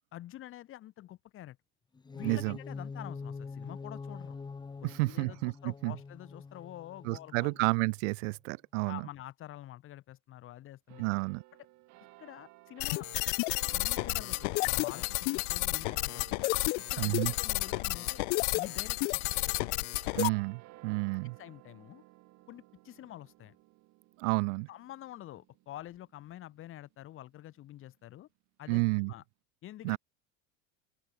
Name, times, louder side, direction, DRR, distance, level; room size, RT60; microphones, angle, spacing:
voice 1, 0.1-1.6 2.1-4.4 4.8-7.7 8.8-11.1 12.2-13.1 13.7-16.4 16.8-18.2 18.5-19.8 21.4-22.0 22.5-23.6 24.7-28.3 28.6-29.2 29.6-30.0, left 13 dB, 35° left, 3.4 m, -47 dB
sound 1, 1.9-7.9, left 4 dB, 10° left, 2.5 m, -44 dB
voice 2, 2.2-2.5 4.8-5.9 7.1-9.0 11.0-11.4 17.0-17.3 20.2-21.3 24.2-24.7 28.7-29.1 29.8-30.0, right 28 dB, 80° right, 1.0 m, -30 dB
sound 2, 10.9-27.6, right 20 dB, 50° right, 4.0 m, -56 dB
sound 3, 12.8-20.3, left 34 dB, 70° left, 0.5 m, -31 dB
cardioid pair, 170°, 36 cm